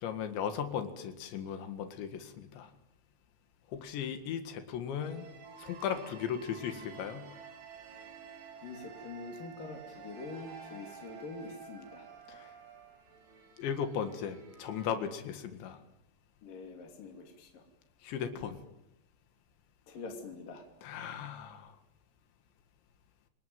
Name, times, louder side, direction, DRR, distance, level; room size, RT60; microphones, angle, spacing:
voice 1, 0.0-2.7 3.7-5.3 5.6-7.3 12.3-12.5 13.6-15.8 18.0-18.6 20.8-21.7, left 8 dB, 90° left, 8 dB, 4.2 m, -37 dB
sound 1, 5.0-15.0, right 6 dB, 70° right, 6.6 m, -51 dB
voice 2, 8.6-12.1 16.4-17.6 19.9-20.6, left 3 dB, 55° left, 2 dB, 4.4 m, -45 dB
30.0 x 20.0 x 9.3 m, 0.85 s
omnidirectional pair, 5.0 m